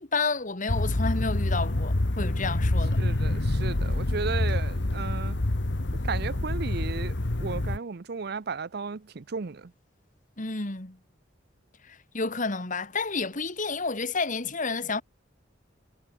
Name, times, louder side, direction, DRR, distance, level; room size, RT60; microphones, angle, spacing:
voice 1, 0.0-3.0 10.4-11.0 11.8-15.0, left 4 dB, 45° left, 2.2 m, -30 dB
sound 1, 0.7-7.8, left 1 dB, 70° left, 1.4 m, -27 dB
voice 2, 3.0-5.4 6.0-9.7, right 5 dB, 60° right, 0.6 m, -34 dB
head